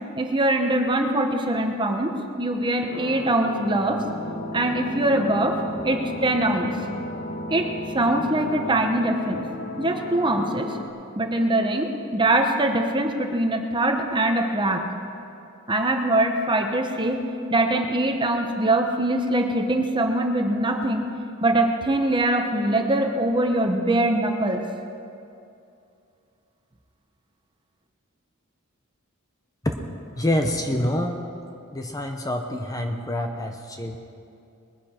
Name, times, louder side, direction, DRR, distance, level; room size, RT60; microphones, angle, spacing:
voice 1, 0.2-4.0 4.5-6.7 7.5-9.5 9.8-10.8 11.1-14.9 15.7-21.1 21.4-24.6, right 1 dB, 20° right, 4 dB, 1.0 m, -23 dB
sound 1, 2.9-10.9, left 1 dB, 40° left, 1.4 m, -34 dB
voice 2, 30.2-31.2 31.7-34.0, left 1 dB, 15° left, 4 dB, 0.8 m, -26 dB
20.5 x 10.5 x 4.4 m, 2.6 s
head